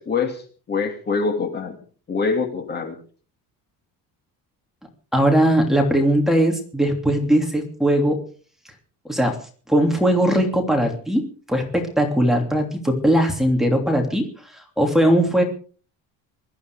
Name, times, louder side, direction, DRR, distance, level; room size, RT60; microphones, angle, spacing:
voice 1, 0.0-1.8 2.1-3.0, left 4 dB, 30° left, 4 dB, 2.7 m, -25 dB
voice 2, 5.1-8.2 9.0-9.4 9.7-14.3 14.5-15.4, right 1 dB, ahead, 1 dB, 3.1 m, -19 dB
21.5 x 13.5 x 4.9 m, 0.42 s
cardioid pair, 175°, 35 cm